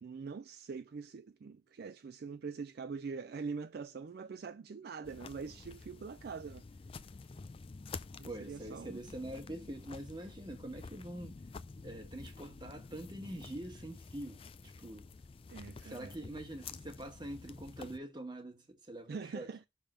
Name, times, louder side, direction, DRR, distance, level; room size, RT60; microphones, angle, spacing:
voice 1, 0.0-6.6 8.1-9.0 15.5-16.2 19.1-19.7, right 5 dB, 50° right, 0.3 m, -44 dB
sound 1, 5.0-18.0, left 4 dB, 25° left, 0.3 m, -50 dB
voice 2, 8.2-11.4 11.8-15.1 15.8-19.5, right 1 dB, 20° right, 1.3 m, -45 dB
5.7 x 3.6 x 4.9 m
head